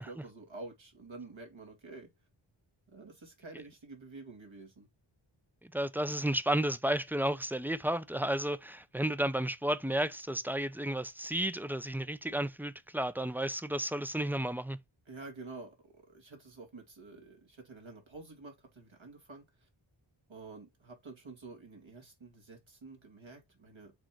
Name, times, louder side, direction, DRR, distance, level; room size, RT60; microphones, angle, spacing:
voice 1, 0.0-2.1 2.9-4.9 15.1-19.7 20.3-23.9, right 3 dB, 70° right, 2.6 m, -49 dB
voice 2, 5.6-14.8, right 1 dB, 5° right, 0.5 m, -32 dB
6.3 x 3.9 x 4.6 m
wide cardioid pair, 60°, 49 cm